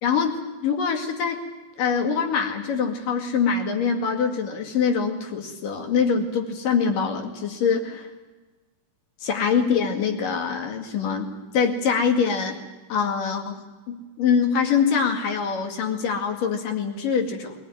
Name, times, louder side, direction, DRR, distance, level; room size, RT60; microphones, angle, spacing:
voice 1, 0.0-1.4 1.8-8.1 9.2-12.6 12.9-17.6, left 6 dB, 75° left, 4 dB, 3.9 m, -24 dB
22.5 x 19.0 x 9.4 m, 1.2 s
omnidirectional pair, 3.9 m